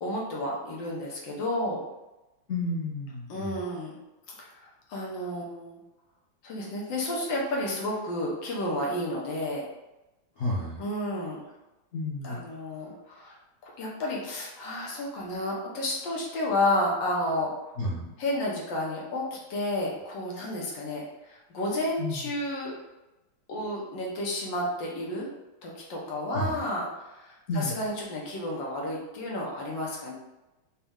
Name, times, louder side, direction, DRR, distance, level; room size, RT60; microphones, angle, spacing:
voice 1, 0.0-1.8 3.3-3.9 4.3-5.8 6.4-9.6 10.8-11.4 12.2-13.4 13.6-17.5 18.2-22.7 23.5-25.3 25.6-30.1, left 1 dB, 70° left, -2 dB, 1.5 m, -31 dB
voice 2, 2.5-3.6 10.4-10.8 11.9-12.4 17.8-18.1 22.0-22.3 26.3-26.6 27.5-27.8, left 2 dB, 85° left, -7 dB, 0.6 m, -31 dB
4.2 x 2.4 x 3.5 m, 1.0 s
omnidirectional pair, 2.3 m